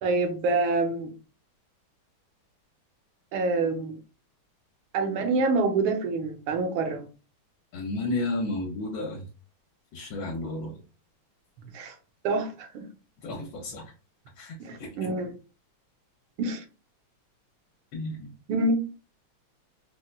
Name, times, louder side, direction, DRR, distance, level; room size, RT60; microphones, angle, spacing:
voice 1, 0.0-1.1 3.3-4.0 4.9-7.1 11.7-11.9 12.2-12.9 14.6-15.3 16.4-16.6 18.5-18.8, right 3 dB, 80° right, 1.5 m, -26 dB
voice 2, 7.7-9.3 9.9-10.8 13.2-13.9 14.4-14.9 17.9-18.3, left 2 dB, 75° left, 1.4 m, -32 dB
4.1 x 2.1 x 2.2 m
omnidirectional pair, 2.3 m